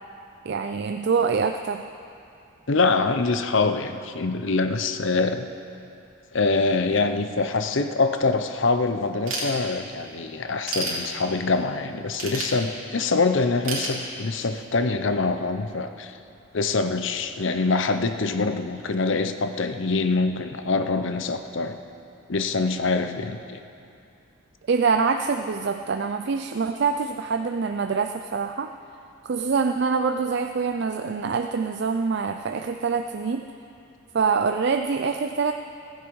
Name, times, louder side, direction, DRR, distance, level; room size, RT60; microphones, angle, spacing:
voice 1, 0.4-1.8 24.7-28.7 29.2-33.4 34.1-35.5, right 5 dB, 50° right, 7 dB, 0.4 m, -25 dB
voice 2, 2.7-5.5 6.3-16.1 16.5-21.8 22.3-23.6, left 3 dB, 60° left, 9 dB, 0.7 m, -24 dB
Ratchet pawl / Tools, 9.3-10.1 10.4-11.6 12.1-13.1 13.6-14.6, right 3 dB, 75° right, 3.1 m, -31 dB
15.5 x 15.0 x 4.7 m, 2.6 s
head